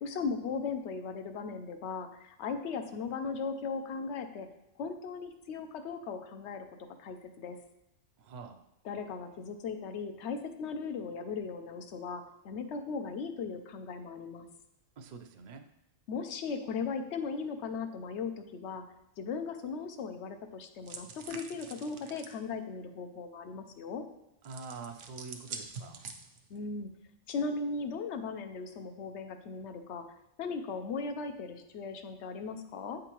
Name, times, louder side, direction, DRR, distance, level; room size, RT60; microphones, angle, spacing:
voice 1, 0.0-4.5 4.8-6.7 7.0-7.6 8.8-14.5 16.1-18.8 19.2-24.0 26.5-26.9 27.3-30.0 30.4-33.0, left 5 dB, 70° left, 7 dB, 0.9 m, -37 dB
voice 2, 8.2-8.7 15.0-15.7 24.4-26.1, right 4 dB, 55° right, 5 dB, 0.5 m, -46 dB
sound 1, 20.9-22.4 24.4-26.6, right 5 dB, 75° right, 1.0 m, -45 dB
8.9 x 3.8 x 3.0 m, 0.87 s
omnidirectional pair, 1.2 m